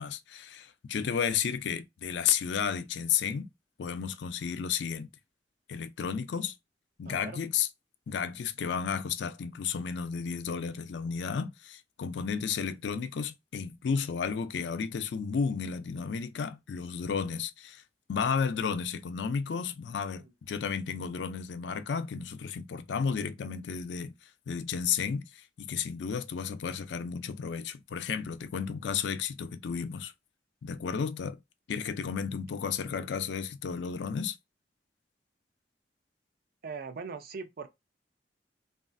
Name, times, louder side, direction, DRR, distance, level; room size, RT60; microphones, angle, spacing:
voice 1, 0.0-3.5 3.8-5.1 5.7-6.6 7.0-7.7 8.1-17.8 18.1-24.1 24.5-30.1 30.6-31.4 31.7-34.4, left 6 dB, 75° left, 0.4 m, -32 dB
voice 2, 7.0-7.4 20.2-20.3 36.6-37.7, right 5 dB, 55° right, 0.5 m, -41 dB
3.1 x 2.4 x 2.5 m
head